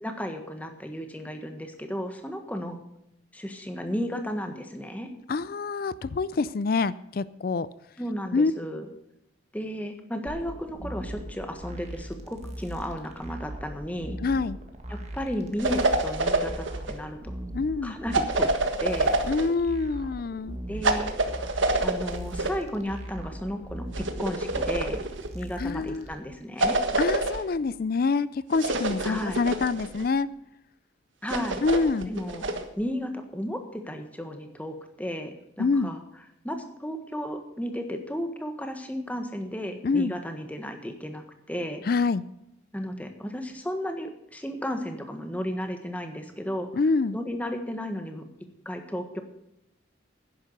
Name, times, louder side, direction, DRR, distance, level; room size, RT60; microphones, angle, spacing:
voice 1, 0.0-2.8 3.3-5.1 8.0-8.9 9.5-14.2 14.9-17.3 17.8-18.5 18.8-19.2 20.7-21.1 21.8-25.1 25.3-26.8 29.0-29.4 31.2-31.6 32.1-32.5 32.8-36.0 36.4-41.8 42.7-46.7 47.1-48.2 48.6-49.2, equal, 10° left, 5 dB, 1.5 m, -34 dB
voice 2, 5.3-7.7 8.3-8.5 14.2-14.6 17.5-17.9 19.3-20.6 25.6-26.1 27.0-30.3 31.6-32.1 35.6-35.9 39.8-40.1 41.9-42.2 46.8-47.2, left 4 dB, 50° left, 17 dB, 0.4 m, -26 dB
sound 1, 10.3-26.1, right 1 dB, 35° right, 1.9 m, -40 dB
sound 2, 15.6-17.0 18.1-19.5 20.8-22.6 23.9-25.3 26.6-27.4 28.5-30.0 31.3-32.6, right 2 dB, 80° right, 1.5 m, -27 dB
11.0 x 10.5 x 6.6 m, 0.81 s
head